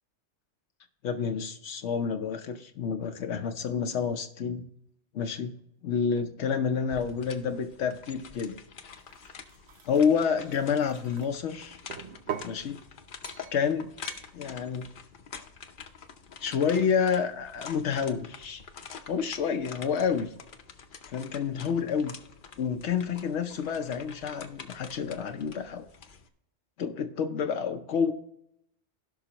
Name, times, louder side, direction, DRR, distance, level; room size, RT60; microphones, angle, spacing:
voice 1, 1.0-4.7 5.1-5.5 5.8-8.6 9.9-11.8 12.4-12.8 13.5-13.9 14.3-14.9 16.4-18.6 19.1-20.3 21.1-22.2 22.6-25.8 26.8-28.1, left 6 dB, 80° left, 6 dB, 1.0 m, -29 dB
sound 1, 6.9-26.3, left 6 dB, 50° left, 0.8 m, -47 dB
sound 2, 9.0-11.3 11.9-12.6 13.2-13.6 14.0-14.3, right 8 dB, 70° right, 1.0 m, -41 dB
17.0 x 5.7 x 2.9 m, 0.76 s
omnidirectional pair, 1.2 m